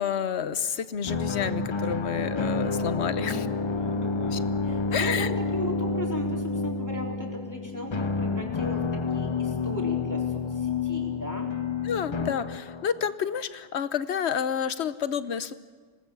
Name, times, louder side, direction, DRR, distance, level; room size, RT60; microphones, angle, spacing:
voice 1, 0.0-3.5 4.3-4.4 4.9-5.3 11.8-15.5, left 8 dB, 65° left, 13 dB, 1.1 m, -29 dB
sound 1, 1.0-13.1, left 4 dB, 35° left, 0.5 m, -29 dB
voice 2, 3.2-5.3 5.5-11.5, left 1 dB, 15° left, -2 dB, 3.9 m, -37 dB
26.0 x 19.0 x 7.1 m, 1.5 s
omnidirectional pair, 1.3 m